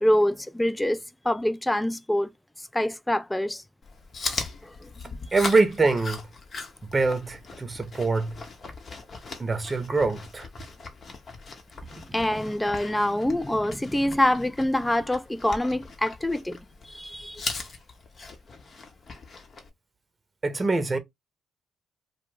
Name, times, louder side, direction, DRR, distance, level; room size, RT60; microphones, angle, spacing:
voice 1, 0.0-2.3 2.7-3.6 4.6-4.9 12.1-17.5, left 1 dB, 10° left, 0.3 m, -25 dB
Chewing mastication, 3.8-19.7, left 3 dB, 50° left, 0.7 m, -39 dB
voice 2, 5.3-6.2 6.9-8.4 9.4-10.5 11.9-12.0 20.4-21.0, right 3 dB, 30° right, 0.7 m, -24 dB
2.4 x 2.1 x 3.2 m
hypercardioid pair, 50°, 0 cm